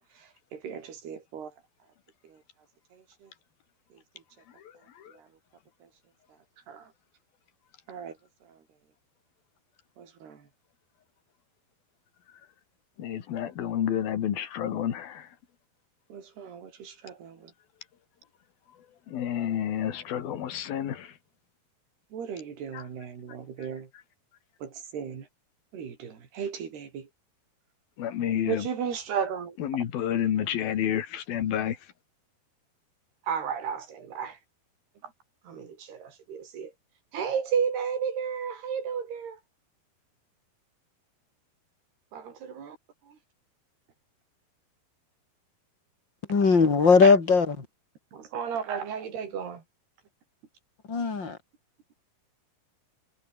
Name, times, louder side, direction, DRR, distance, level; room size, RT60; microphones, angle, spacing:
voice 1, 0.0-1.5 2.2-2.4 2.9-3.3 3.9-4.0 5.1-5.3 5.8-5.9 6.7-6.9 7.9-8.2 8.4-8.6 10.0-10.5 16.1-17.5 22.1-23.9 24.6-25.3 25.7-27.1 28.5-29.6 30.4-30.5 33.2-34.4 35.0-35.1 35.4-36.7 37.1-39.4 42.1-42.8 43.1-43.2 46.8-47.1 48.1-49.6, right 7 dB, 85° right, 6.1 m, -34 dB
voice 2, 13.0-15.3 19.1-21.1 22.7-22.8 28.0-28.7 29.6-31.8, left 10 dB, 70° left, 3.8 m, -29 dB
voice 3, 46.3-47.7 50.9-51.4, left 4 dB, 30° left, 4.0 m, -19 dB
omnidirectional pair, 4.5 m